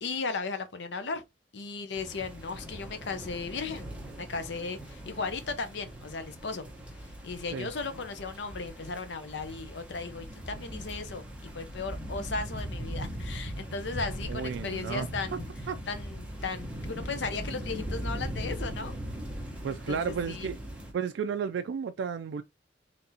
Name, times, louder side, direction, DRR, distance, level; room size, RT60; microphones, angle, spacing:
voice 1, 0.0-1.2 1.5-3.9 4.1-6.6 7.2-15.5 15.9-18.9 19.7-20.5, left 4 dB, 70° left, 0.7 m, -36 dB
sound 1, 1.9-20.9, equal, 5° right, 1.0 m, -40 dB
voice 2, 14.3-15.4 15.7-15.8 19.6-20.6 20.9-22.4, right 6 dB, 75° right, 0.3 m, -33 dB
3.9 x 3.4 x 2.7 m
head